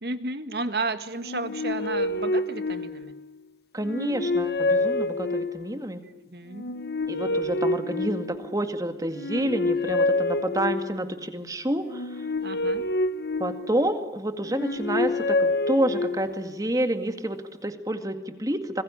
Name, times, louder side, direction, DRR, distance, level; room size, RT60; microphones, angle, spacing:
voice 1, 0.0-3.2 6.0-6.6 12.4-12.9, right 3 dB, 60° right, 10 dB, 1.8 m, -33 dB
sound 1, 1.2-3.3 3.8-5.8 6.5-8.6 9.1-11.1 11.8-14.0 14.5-16.5, left 2 dB, 65° left, 1.0 m, -27 dB
voice 2, 3.7-6.0 7.1-12.3 13.4-18.8, right 1 dB, 20° right, 8 dB, 2.1 m, -28 dB
26.5 x 21.0 x 9.8 m, 1.0 s
head